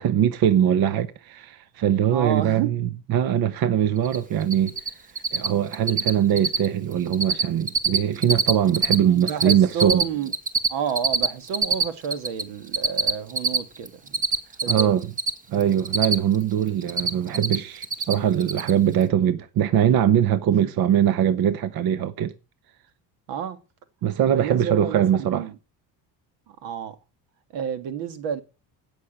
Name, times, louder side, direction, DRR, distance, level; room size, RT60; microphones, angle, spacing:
voice 1, 0.0-4.7 5.3-10.1 14.7-15.1 15.5-22.3 24.0-25.5, right 10 dB, 60° right, 1.1 m, -22 dB
voice 2, 2.1-2.7 9.1-10.3 10.7-14.2 14.6-15.0 20.6-20.7 23.3-23.6 24.3-25.5 26.5-27.0 27.5-28.4, right 8 dB, 85° right, 2.0 m, -30 dB
Cricket, 4.0-4.2 4.4-4.9 5.2-5.5 5.7-6.1 6.4-6.7 6.9-7.4 7.7-9.0 9.2-12.4 12.7-15.3 15.6-16.4 16.7-17.6 17.8-18.1 18.4-18.7, right 4 dB, 20° right, 1.1 m, -22 dB
16.5 x 6.5 x 8.0 m
cardioid pair, 120°, 42 cm